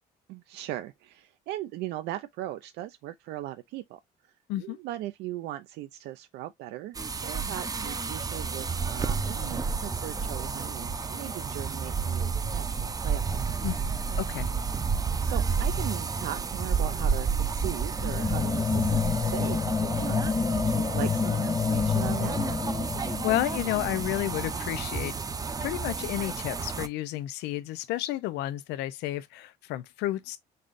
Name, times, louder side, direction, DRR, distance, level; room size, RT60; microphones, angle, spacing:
voice 1, 0.3-13.6 15.2-20.3 20.5-22.4, right 14 dB, 85° right, 0.5 m, -39 dB
sound 1, 6.9-26.9, right 5 dB, 20° right, 0.6 m, -31 dB
voice 2, 14.2-14.5 23.0-25.1 25.6-30.4, left 15 dB, 85° left, 0.5 m, -31 dB
sound 2, 18.0-24.7, left 5 dB, 20° left, 0.4 m, -28 dB
5.4 x 3.8 x 2.4 m
cardioid pair, 110°, 17 cm